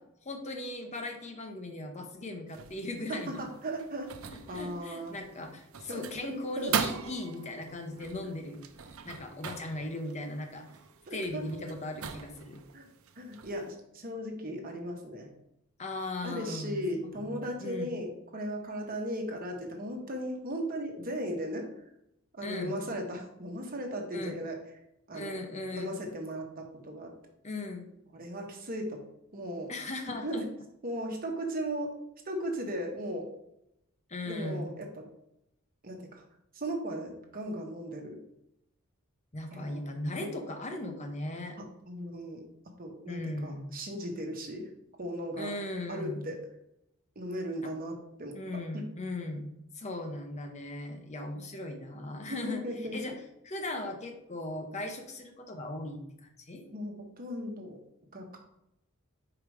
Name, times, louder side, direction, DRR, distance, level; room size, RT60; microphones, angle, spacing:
voice 1, 0.3-3.5 4.3-8.6 9.0-10.7 11.1-12.6 15.8-16.8 17.2-17.9 22.4-22.8 24.1-24.4 25.1-26.0 27.4-27.9 29.7-30.4 34.1-34.7 39.3-41.6 43.1-43.8 45.4-46.3 47.6-47.7 48.4-52.6 52.9-53.1 53.4-56.6, left 2 dB, 35° left, 4 dB, 0.8 m, -38 dB
sound 1, 2.5-13.7, right 7 dB, 80° right, 0.6 m, -41 dB
voice 2, 3.1-5.1 5.9-6.7 8.2-8.3 11.1-11.4 12.7-12.9 13.2-15.3 16.2-21.7 22.3-24.6 25.1-25.3 25.7-27.1 28.1-29.0 29.3-29.7 30.2-30.5 30.8-31.9 32.2-33.3 34.3-35.0 35.8-36.2 36.5-38.2 39.5-39.8 40.1-40.4 41.6-42.4 42.8-44.7 45.0-45.5 45.9-46.4 47.1-48.8 52.3-53.0 56.6-57.8 58.1-58.4, equal, 45° right, 2 dB, 1.3 m, -37 dB
4.9 x 4.8 x 4.9 m, 0.81 s
head